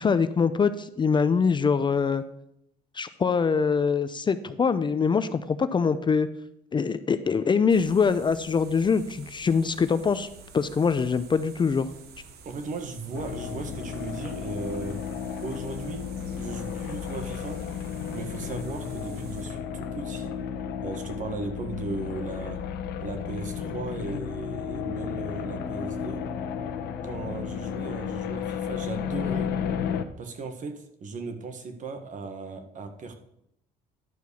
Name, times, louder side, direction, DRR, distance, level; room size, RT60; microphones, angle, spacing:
voice 1, 0.0-2.2 2.9-6.3 6.7-10.3 10.5-11.9, left 5 dB, 30° left, 12 dB, 0.5 m, -23 dB
sound 1, 7.7-19.5, right 5 dB, 70° right, 1.3 m, -49 dB
voice 2, 12.4-15.0 15.4-16.0 16.3-17.6 18.1-20.3 20.8-22.6 23.0-26.2 27.0-29.5 30.2-33.1, right 3 dB, 50° right, 7 dB, 1.6 m, -36 dB
sound 2, 13.1-30.0, left 7 dB, 75° left, 1.0 m, -33 dB
11.0 x 4.6 x 7.0 m, 0.78 s
cardioid pair, 110°, 17 cm